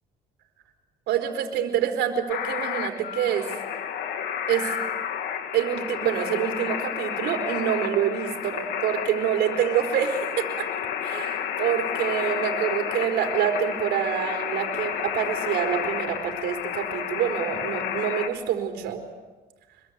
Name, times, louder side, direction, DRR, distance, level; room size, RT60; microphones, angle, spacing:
voice 1, 1.1-3.5 4.5-4.8 5.5-10.7 11.0-19.0, right 9 dB, 80° right, 6 dB, 4.4 m, -26 dB
sound 1, 2.3-18.3, left 9 dB, 80° left, 2.6 m, -31 dB
25.5 x 23.0 x 8.3 m, 1.2 s
cardioid pair, 110°, 17 cm